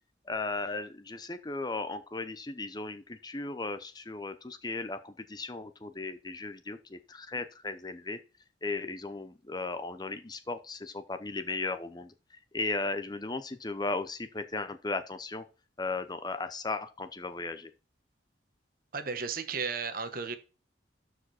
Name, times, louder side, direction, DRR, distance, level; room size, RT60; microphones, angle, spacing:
voice 1, 0.3-8.2 8.6-12.1 12.5-15.4 15.8-17.7, left 3 dB, 20° left, 0.7 m, -36 dB
voice 2, 18.9-20.4, right 5 dB, 50° right, 1.2 m, -34 dB
12.5 x 5.0 x 4.3 m
head